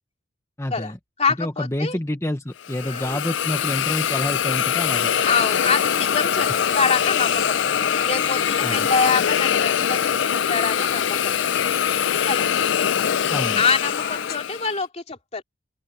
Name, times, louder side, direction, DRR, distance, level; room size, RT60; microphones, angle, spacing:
voice 1, 0.6-1.0 1.4-5.1 8.6-8.9 13.3-13.6, left 1 dB, 15° left, 1.0 m, -28 dB
voice 2, 1.2-2.0 2.8-3.2 5.2-6.5 6.7-7.6 8.0-11.3 12.2-12.5 13.6-15.4, left 5 dB, 35° left, 3.0 m, -25 dB
Hiss, 2.6-14.7, left 9 dB, 70° left, 0.5 m, -23 dB
Crowd, 4.9-14.4, left 5 dB, 50° left, 1.3 m, -32 dB
open air
head